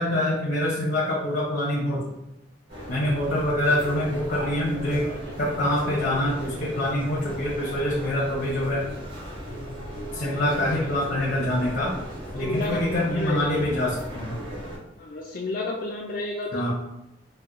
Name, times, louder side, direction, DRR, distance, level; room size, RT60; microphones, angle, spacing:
voice 1, 0.0-2.0 2.9-5.1 5.4-8.8 10.1-11.9 12.3-14.4 16.5-16.7, left 1 dB, 65° left, -4 dB, 0.7 m, -25 dB
sound 1, 2.7-14.8, equal, 65° right, 1.5 m, -37 dB
voice 2, 10.3-11.0 12.4-13.4 15.0-16.7, left 2 dB, 50° left, -2 dB, 0.4 m, -32 dB
4.3 x 2.1 x 2.5 m, 0.88 s
head